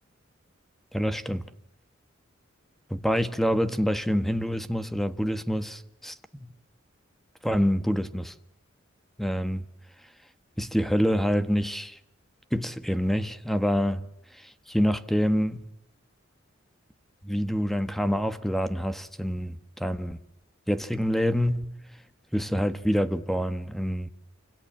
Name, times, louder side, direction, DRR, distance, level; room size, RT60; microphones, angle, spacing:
voice 1, 0.9-1.4 2.9-6.5 7.4-8.3 9.2-9.6 10.6-12.0 12.5-14.1 14.4-15.6 17.2-20.2 20.7-21.7 22.3-24.1, equal, ahead, 1.4 m, -26 dB
29.0 x 26.0 x 7.5 m
head